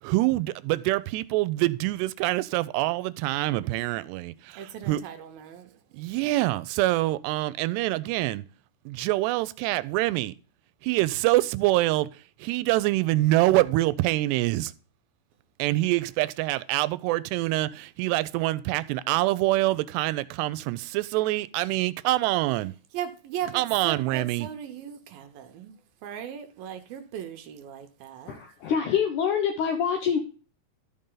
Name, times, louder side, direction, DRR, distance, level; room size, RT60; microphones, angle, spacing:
voice 1, 0.0-5.0 5.9-8.4 8.9-10.3 10.8-14.7 15.6-22.7 23.5-24.5, right 18 dB, 85° right, 2.7 m, -25 dB
voice 2, 4.6-5.8 22.9-28.4, right 9 dB, 70° right, 2.5 m, -38 dB
voice 3, 28.3-30.2, left 7 dB, 75° left, 1.8 m, -26 dB
13.0 x 5.5 x 3.8 m
omnidirectional pair, 4.8 m